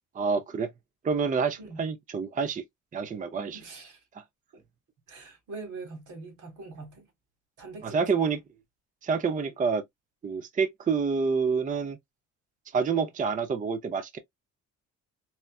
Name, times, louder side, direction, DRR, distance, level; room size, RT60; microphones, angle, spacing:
voice 1, 0.1-0.7 1.0-2.6 2.9-3.6 7.8-8.4 9.0-9.8 10.2-12.0 12.7-14.2, right 5 dB, 25° right, 0.5 m, -27 dB
voice 2, 3.5-4.0 4.5-4.6 5.1-7.1 7.6-8.4, right 3 dB, 80° right, 1.9 m, -43 dB
4.2 x 2.3 x 2.3 m
cardioid pair, 90°, 30 cm